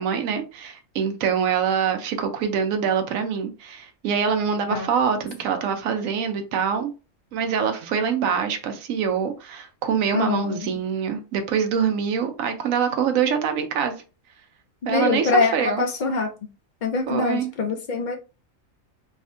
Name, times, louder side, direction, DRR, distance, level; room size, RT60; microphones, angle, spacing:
voice 1, 0.0-6.9 7.3-14.0 14.9-15.8 17.1-17.5, right 7 dB, 80° right, 1.0 m, -24 dB
voice 2, 10.1-10.6 14.8-16.3 16.8-18.2, left 4 dB, 60° left, 0.5 m, -24 dB
3.5 x 2.1 x 2.5 m
omnidirectional pair, 1.4 m